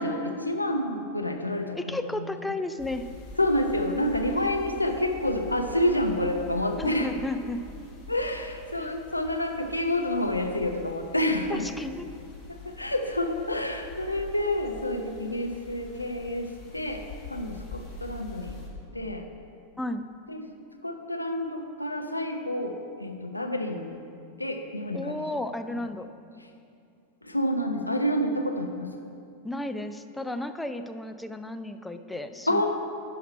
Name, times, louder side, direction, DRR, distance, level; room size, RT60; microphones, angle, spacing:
voice 1, 0.0-2.5 3.4-7.1 8.1-11.6 12.5-17.0 17.3-18.6 18.9-19.2 20.3-20.5 20.8-24.0 24.4-25.2 27.2-29.1 32.5-32.7, left 1 dB, 85° left, 4 dB, 0.7 m, -28 dB
voice 2, 1.7-3.1 4.3-4.5 6.8-7.6 8.8-8.9 11.5-12.1 19.8-20.1 24.9-26.1 29.4-32.7, left 1 dB, 5° left, 8 dB, 0.4 m, -33 dB
sound 1, 2.8-18.7, left 3 dB, 30° left, 1.7 m, -45 dB
11.0 x 5.7 x 4.2 m, 2.4 s
figure-of-eight pair, 90°, 0 cm